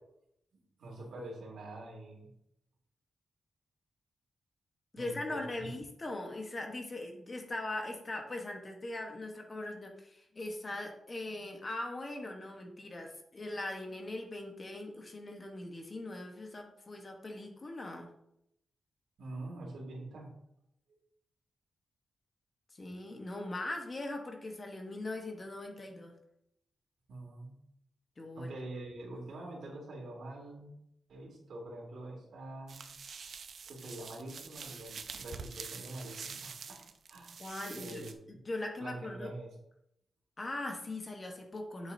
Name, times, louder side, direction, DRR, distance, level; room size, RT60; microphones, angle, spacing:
voice 1, 0.8-2.3 4.9-5.7 19.2-20.3 27.1-27.5 28.3-30.7 31.1-32.8 33.7-36.8 37.1-37.4 37.7-38.4 38.8-39.5, right 2 dB, 90° right, -1 dB, 2.8 m, -45 dB
voice 2, 4.9-18.1 22.8-26.1 28.2-28.5 37.4-39.3 40.4-41.9, left 2 dB, 25° left, 3 dB, 1.2 m, -40 dB
sound 1, 32.7-38.1, right 5 dB, 60° right, 0.7 m, -46 dB
8.6 x 7.6 x 2.8 m, 0.77 s
wide cardioid pair, 170°, 0 cm